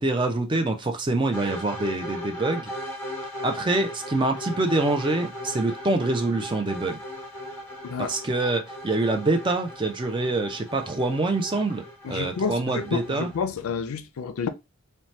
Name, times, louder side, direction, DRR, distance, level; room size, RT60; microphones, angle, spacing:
voice 1, 0.0-2.7 3.4-7.0 8.1-13.3, right 2 dB, 20° right, 0.4 m, -25 dB
sound 1, 1.3-13.4, equal, 10° left, 0.9 m, -38 dB
voice 2, 7.8-8.1 12.0-14.5, left 5 dB, 85° left, 0.4 m, -29 dB
2.7 x 2.1 x 3.1 m
head